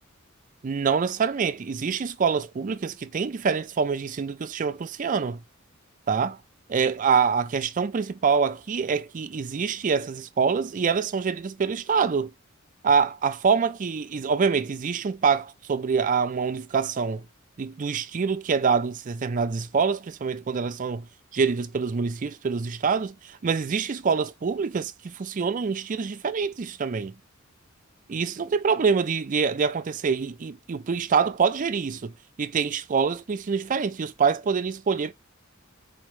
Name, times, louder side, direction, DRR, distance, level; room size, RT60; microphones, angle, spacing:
voice 1, 0.6-5.4 6.1-6.4 6.7-12.3 12.8-17.2 17.6-21.1 21.3-27.2 28.1-32.1 32.4-35.1, right 5 dB, 40° right, 0.4 m, -25 dB
4.5 x 3.1 x 3.1 m
head